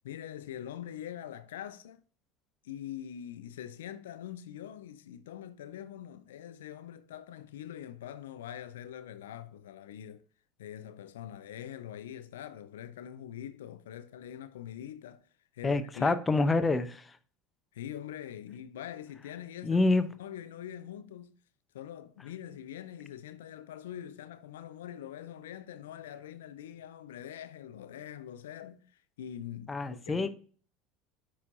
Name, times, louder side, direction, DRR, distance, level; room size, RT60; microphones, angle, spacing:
voice 1, 0.0-2.0 2.6-10.2 10.6-15.3 15.5-16.5 17.7-19.8 20.2-21.3 21.7-30.3, left 10 dB, 80° left, 0.4 m, -44 dB
voice 2, 15.6-17.2 19.6-20.1 29.7-30.3, left 3 dB, 20° left, 0.7 m, -27 dB
9.4 x 4.3 x 2.5 m
hypercardioid pair, 80°, 0 cm